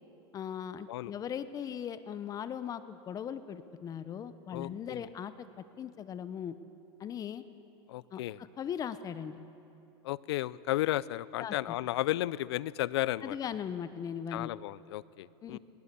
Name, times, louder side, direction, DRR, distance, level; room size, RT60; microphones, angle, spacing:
voice 1, 0.3-5.3 5.8-6.6 7.0-7.4 8.1-8.2 8.6-9.4 11.4-11.8 13.2-14.5 15.4-15.6, left 8 dB, 25° left, 13 dB, 0.9 m, -38 dB
voice 2, 4.5-5.1 7.9-8.4 10.0-13.4 14.3-15.6, left 15 dB, 75° left, 20 dB, 0.5 m, -33 dB
20.0 x 19.5 x 6.9 m, 2.9 s
supercardioid pair, 130°, 14 cm